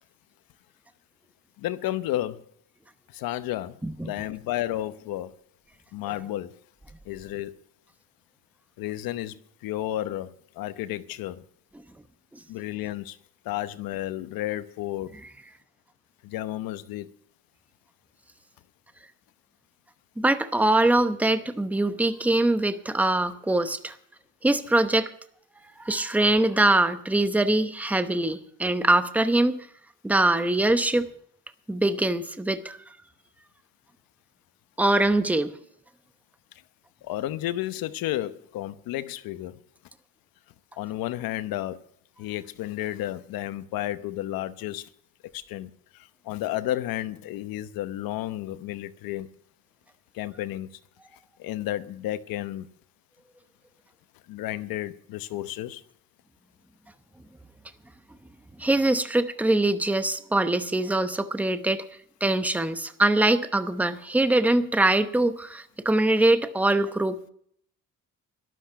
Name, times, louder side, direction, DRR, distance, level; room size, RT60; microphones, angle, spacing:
voice 1, 1.6-2.4 3.1-5.3 5.9-6.5 7.1-7.6 8.8-11.4 12.5-13.2 13.4-15.2 16.2-17.1 37.0-39.5 40.8-41.8 42.2-44.8 45.3-49.3 50.1-50.7 51.4-52.7 54.3-55.8, left 14 dB, 85° left, 0.9 m, -32 dB
voice 2, 3.8-4.1 20.2-23.9 24.4-25.1 25.8-29.5 30.0-31.1 31.7-32.8 34.8-35.5 58.6-61.8 62.2-67.3, right 2 dB, 5° right, 0.8 m, -23 dB
12.5 x 12.5 x 5.7 m
cardioid pair, 125°, 34 cm